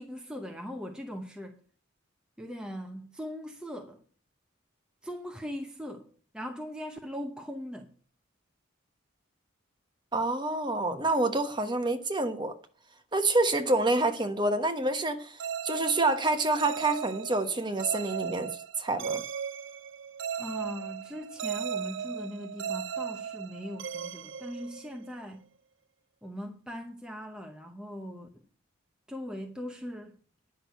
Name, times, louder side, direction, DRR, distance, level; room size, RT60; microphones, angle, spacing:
voice 1, 0.0-1.6 2.4-4.0 5.0-6.1 6.3-7.9 20.4-25.5 26.2-28.4 29.1-30.2, equal, 5° right, 0.8 m, -40 dB
voice 2, 10.1-12.5 13.1-15.4 15.6-18.5 18.8-19.2, right 2 dB, 20° right, 1.1 m, -27 dB
sound 1, 15.4-25.2, right 7 dB, 65° right, 0.4 m, -37 dB
10.0 x 6.2 x 8.0 m
head